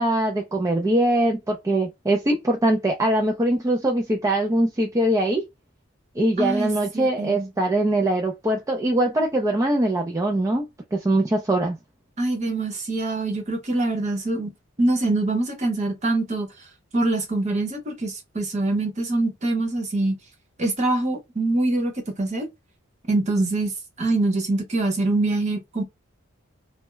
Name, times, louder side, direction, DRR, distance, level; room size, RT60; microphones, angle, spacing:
voice 1, 0.0-5.4 6.2-10.7 10.9-11.8, right 1 dB, 15° right, 0.4 m, -22 dB
voice 2, 6.4-7.5 12.2-14.5 14.8-16.5 16.9-20.2 20.6-21.9 22.2-22.5 23.1-23.7 24.0-25.8, right 2 dB, 35° right, 0.8 m, -24 dB
2.2 x 2.1 x 3.0 m
head